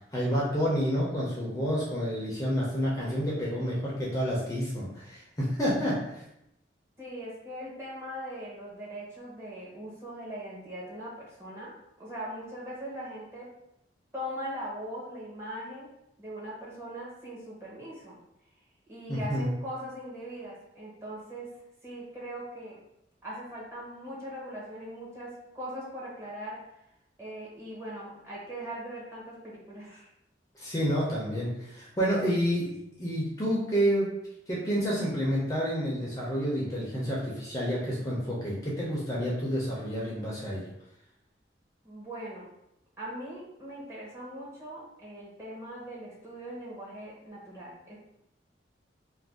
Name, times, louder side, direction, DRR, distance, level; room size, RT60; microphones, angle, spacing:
voice 1, 0.1-6.2 19.1-19.5 30.5-34.1 34.5-40.7, equal, 20° left, -6 dB, 0.6 m, -29 dB
voice 2, 7.0-13.5 14.1-15.9 16.2-18.2 18.9-21.5 21.8-22.8 23.2-26.6 27.2-30.1 41.8-42.5 43.0-48.0, equal, 15° right, -7 dB, 0.9 m, -40 dB
2.5 x 2.2 x 3.4 m, 0.83 s
head